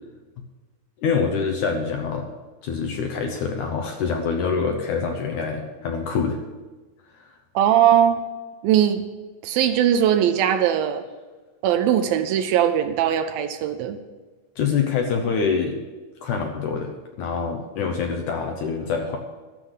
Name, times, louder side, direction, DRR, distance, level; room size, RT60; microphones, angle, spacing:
voice 1, 1.0-2.3 2.6-6.4 14.6-15.8 16.2-16.9 17.2-19.2, left 5 dB, 70° left, 3 dB, 2.1 m, -25 dB
voice 2, 7.6-8.2 8.6-9.0 9.4-11.0 11.6-14.0, right 10 dB, 75° right, 8 dB, 2.4 m, -20 dB
12.0 x 7.0 x 8.1 m, 1.3 s
omnidirectional pair, 4.5 m